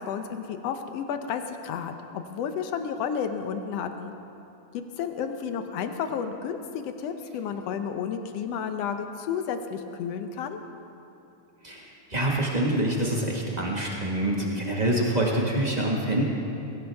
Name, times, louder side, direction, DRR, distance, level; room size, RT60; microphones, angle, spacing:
voice 1, 0.0-4.1 4.7-10.6 14.3-14.6, left 7 dB, 70° left, 7 dB, 1.5 m, -32 dB
voice 2, 11.6-16.2, right 1 dB, 55° right, -3 dB, 0.4 m, -26 dB
21.5 x 17.0 x 3.5 m, 2.8 s
omnidirectional pair, 3.6 m